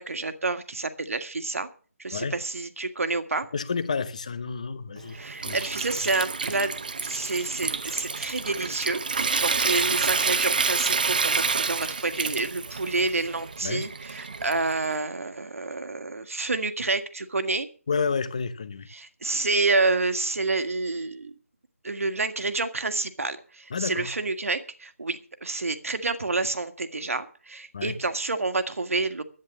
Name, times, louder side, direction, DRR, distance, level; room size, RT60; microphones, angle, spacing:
voice 1, 0.0-1.7 2.0-3.5 5.1-6.7 7.0-17.7 18.9-21.3 21.8-29.2, right 3 dB, 65° right, 1.7 m, -28 dB
voice 2, 3.5-5.2 5.4-5.6 13.6-13.9 17.9-18.9 23.7-24.1 27.7-28.0, left 5 dB, 25° left, 0.7 m, -30 dB
Water tap faucet / Sink (filling or washing) / Trickle dribble, 5.0-14.9, right 4 dB, 35° right, 0.7 m, -28 dB
11.0 x 9.4 x 7.2 m
figure-of-eight pair, 175°, 8 cm